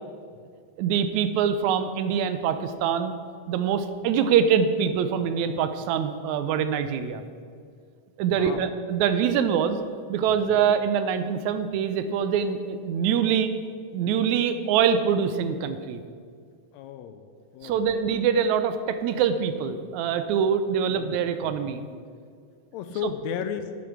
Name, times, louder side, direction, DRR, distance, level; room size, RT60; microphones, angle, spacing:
voice 1, 0.8-3.1 3.5-7.2 8.2-9.8 10.1-13.5 13.9-16.0 17.6-21.8 23.0-23.1, right 7 dB, 85° right, 10 dB, 2.0 m, -24 dB
voice 2, 8.3-8.7 10.3-10.4 16.7-17.3 17.5-17.8 20.9-21.6 22.7-23.7, left 8 dB, 80° left, 9 dB, 1.7 m, -34 dB
9.0 x 8.5 x 6.0 m, 2.1 s
omnidirectional pair, 3.3 m